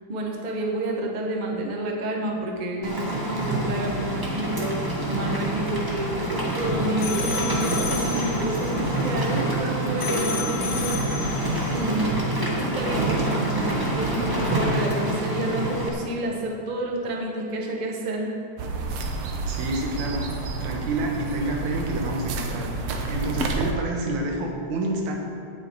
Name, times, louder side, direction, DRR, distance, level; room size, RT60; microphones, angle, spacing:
voice 1, 0.1-4.8 5.1-13.6 13.9-18.3, right 1 dB, 35° right, 0 dB, 0.7 m, -29 dB
Rain, 2.8-15.9, right 1 dB, 10° right, 1.2 m, -26 dB
sound 1, 6.6-9.7 10.0-12.0, left 4 dB, 75° left, 2.3 m, -34 dB
sound 2, 18.6-23.7, right 3 dB, 65° right, 1.9 m, -30 dB
voice 2, 19.4-20.3 20.6-22.7 23.1-25.1, right 2 dB, 80° right, 1 dB, 2.9 m, -28 dB
17.5 x 6.9 x 4.8 m, 2.5 s
omnidirectional pair, 3.3 m